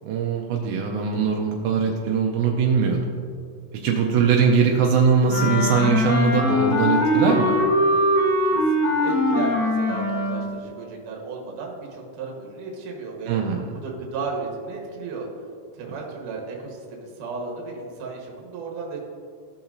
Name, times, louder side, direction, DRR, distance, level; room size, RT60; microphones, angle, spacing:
voice 1, 0.0-3.0 3.8-7.6 13.3-13.6, right 5 dB, 85° right, 1 dB, 2.1 m, -21 dB
Wind instrument woodwind instrument, 5.3-10.5, left 1 dB, 40° left, 1.1 m, -21 dB
voice 2, 8.5-15.3 15.7-19.0, right 4 dB, 65° right, -1 dB, 2.4 m, -34 dB
15.0 x 5.8 x 2.6 m, 2.3 s
omnidirectional pair, 4.7 m